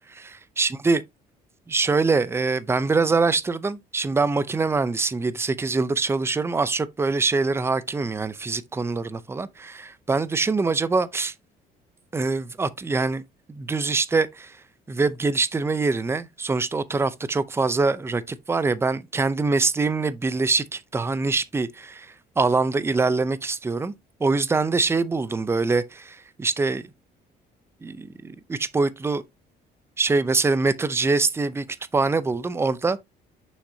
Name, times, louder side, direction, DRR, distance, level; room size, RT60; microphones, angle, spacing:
voice 1, 0.1-1.0 1.7-11.3 12.1-13.2 13.5-14.6 14.9-22.1 22.4-23.9 24.2-26.8 27.8-29.2 30.0-31.7 31.9-33.0, right 3 dB, 15° right, 0.6 m, -24 dB
6.5 x 6.1 x 2.7 m
cardioid pair, 110°, 17 cm